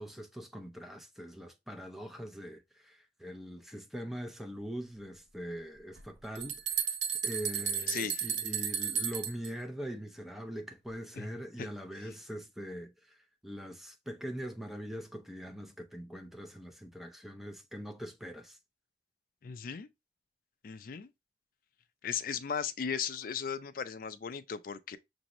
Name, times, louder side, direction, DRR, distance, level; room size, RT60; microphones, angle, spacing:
voice 1, 0.0-6.9 7.2-13.2 13.4-18.6, equal, ahead, 0.5 m, -42 dB
sound 1, 6.0-9.5, right 7 dB, 80° right, 0.6 m, -33 dB
voice 2, 7.9-8.2 11.1-11.3 11.6-11.7 19.4-19.9 20.6-21.1 22.0-25.0, left 7 dB, 50° left, 0.4 m, -37 dB
6.0 x 2.7 x 2.9 m
head